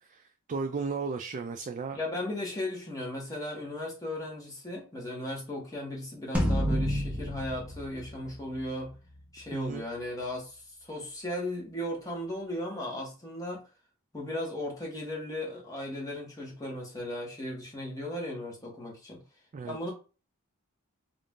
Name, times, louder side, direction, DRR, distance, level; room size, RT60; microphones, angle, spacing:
voice 1, 0.0-2.0 9.5-9.9 19.5-19.9, right 4 dB, 35° right, 6 dB, 0.3 m, -35 dB
voice 2, 1.9-8.9 9.3-13.6 14.1-19.2 19.7-19.9, left 1 dB, 15° left, -2 dB, 1.4 m, -36 dB
sound 1, 6.3-8.9, equal, 5° right, 0.9 m, -30 dB
3.8 x 2.6 x 3.6 m, 0.33 s
head